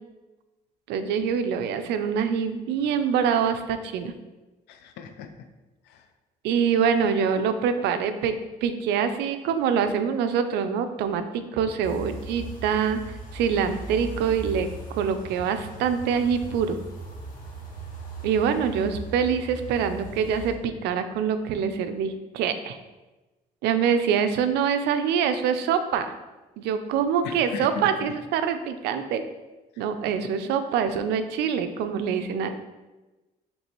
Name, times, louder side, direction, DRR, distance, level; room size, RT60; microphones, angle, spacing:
voice 1, 0.9-4.1 6.4-16.8 18.2-22.8 23.6-26.1 26.6-29.2 29.8-32.5, right 7 dB, 80° right, 9 dB, 0.5 m, -25 dB
voice 2, 4.7-5.3 5.9-6.0 27.2-28.1, left 5 dB, 85° left, 7 dB, 0.5 m, -36 dB
sound 1, 11.8-20.5, right 2 dB, 55° left, 1.4 m, -38 dB
5.3 x 3.3 x 3.0 m, 1.1 s
cardioid pair, 110°, 17 cm